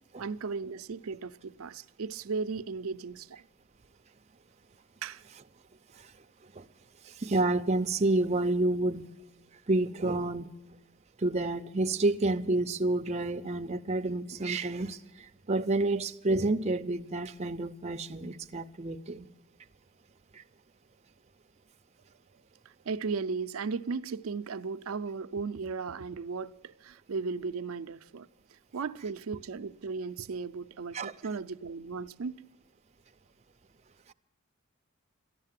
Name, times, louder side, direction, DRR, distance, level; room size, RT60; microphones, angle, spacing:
voice 1, 0.2-3.4 5.0-5.2 22.9-32.4, right 4 dB, 80° right, 0.5 m, -36 dB
voice 2, 7.1-9.1 9.7-10.5 11.2-19.3 20.3-20.4 30.9-31.1, right 2 dB, 30° right, 0.6 m, -29 dB
14.0 x 11.5 x 7.4 m
head